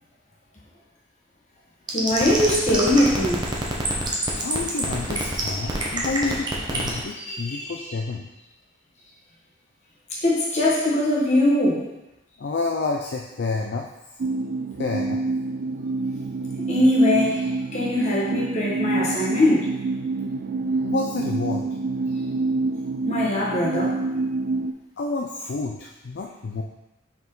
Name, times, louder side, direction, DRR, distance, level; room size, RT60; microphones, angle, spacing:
voice 1, 1.9-3.4 7.2-7.7 10.2-11.8 16.7-19.7 23.1-24.0, left 1 dB, 35° left, -5 dB, 1.4 m, -22 dB
Feedback Phaser, 1.9-7.0, right 2 dB, 20° right, 0.8 m, -25 dB
voice 2, 4.3-8.3 12.4-13.9 14.2-14.3 14.8-15.2 20.8-21.6 25.0-26.6, left 3 dB, 55° left, 1 dB, 0.4 m, -29 dB
sound 1, 14.2-24.7, right 3 dB, 50° right, 0.3 m, -27 dB
5.7 x 4.6 x 3.8 m, 0.97 s
head